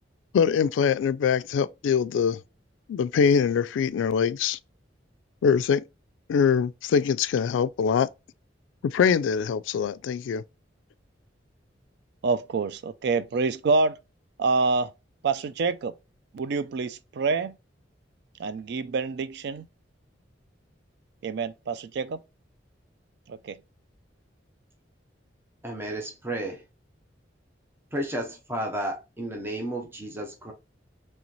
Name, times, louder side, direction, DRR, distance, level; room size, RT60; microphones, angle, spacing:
voice 1, 0.3-2.4 2.9-4.6 5.4-5.8 6.3-8.1 8.8-10.4, left 6 dB, 80° left, 0.3 m, -23 dB
voice 2, 12.2-14.0 14.4-14.9 15.2-15.9 16.3-17.5 18.4-19.7 21.2-22.2 23.3-23.6, right 4 dB, 60° right, 0.3 m, -26 dB
voice 3, 25.6-26.6 27.9-30.5, right 1 dB, 15° right, 0.6 m, -32 dB
3.2 x 3.0 x 3.8 m
head